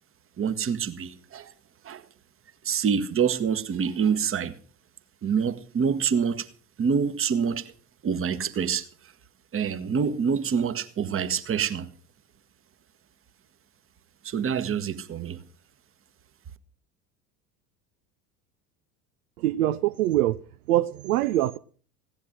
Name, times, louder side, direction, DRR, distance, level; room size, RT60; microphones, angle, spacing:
voice 1, 0.4-1.5 1.8-2.0 2.6-4.6 5.2-6.5 6.8-7.7 8.0-8.9 9.5-11.9 14.2-15.4, right 6 dB, 25° right, 1.4 m, -26 dB
voice 2, 19.4-20.4 20.7-21.6, right 14 dB, 60° right, 0.7 m, -24 dB
16.5 x 10.5 x 6.2 m
figure-of-eight pair, 75°, 49 cm